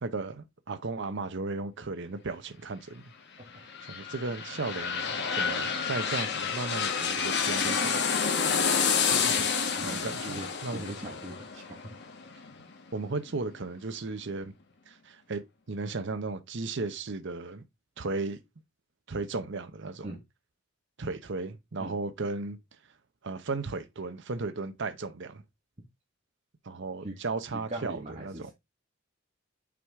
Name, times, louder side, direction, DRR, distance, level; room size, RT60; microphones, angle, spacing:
voice 1, 0.0-3.0 3.8-8.0 9.1-9.3 9.8-10.8 12.9-14.5 14.9-17.6 18.0-18.4 19.1-20.1 21.0-22.6 23.2-25.4 26.6-28.5, right 3 dB, 60° right, 0.8 m, -35 dB
sound 1, 3.5-13.1 13.5-13.6, left 6 dB, 55° left, 1.2 m, -29 dB
voice 2, 9.8-11.9 20.0-20.2 21.8-21.9 27.0-27.1 27.5-28.5, right 1 dB, 35° right, 1.5 m, -40 dB
6.0 x 4.7 x 3.5 m
head